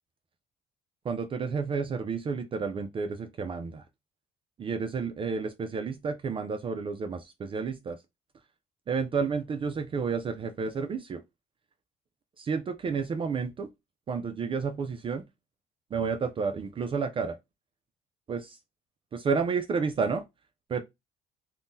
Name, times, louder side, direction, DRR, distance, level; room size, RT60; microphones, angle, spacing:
voice 1, 1.0-3.8 4.6-8.0 8.9-11.2 12.4-13.7 14.1-15.2 15.9-17.4 18.3-18.6 19.1-20.2 20.7-20.8, right 5 dB, 30° right, 0.4 m, -31 dB
3.6 x 2.1 x 2.6 m
cardioid pair, 110°, 17 cm